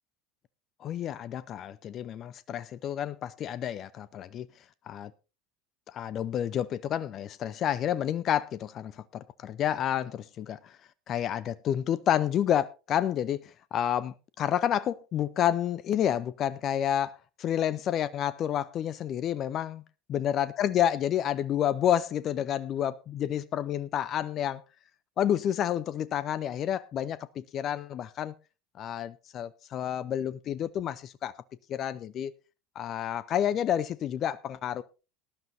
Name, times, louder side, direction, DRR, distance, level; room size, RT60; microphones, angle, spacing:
voice 1, 0.8-4.5 4.9-5.1 5.9-10.8 11.1-19.8 20.1-24.6 25.2-28.3 28.8-31.3 31.7-32.3 32.8-34.8, left 10 dB, 40° left, 0.6 m, -29 dB
18.5 x 12.0 x 2.7 m
figure-of-eight pair, 70°, 0 cm